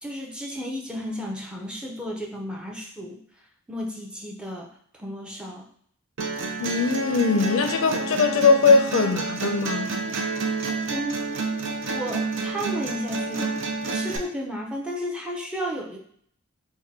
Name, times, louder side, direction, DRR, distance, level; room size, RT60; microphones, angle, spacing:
voice 1, 0.0-3.2 3.7-4.7 4.9-5.7 10.9-11.4 11.9-13.5 13.8-16.0, equal, 5° right, 0.6 m, -33 dB
sound 1, 6.2-14.2, right 3 dB, 65° right, 0.6 m, -29 dB
voice 2, 6.6-9.9, left 4 dB, 75° left, 0.5 m, -20 dB
3.6 x 2.2 x 4.1 m
head